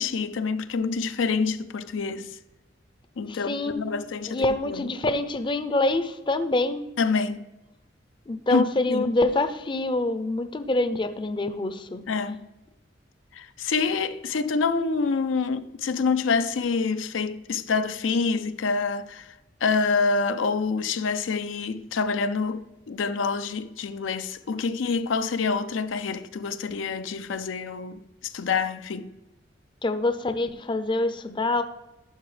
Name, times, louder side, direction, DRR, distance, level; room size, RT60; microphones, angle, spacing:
voice 1, 0.0-2.4 3.2-4.9 7.0-7.5 8.5-9.1 12.1-12.5 13.3-19.3 19.6-29.1, left 4 dB, 85° left, 0.5 m, -27 dB
voice 2, 3.3-3.8 4.3-6.9 8.3-12.0 29.8-31.6, left 2 dB, 25° left, 0.5 m, -26 dB
11.5 x 6.0 x 3.2 m
head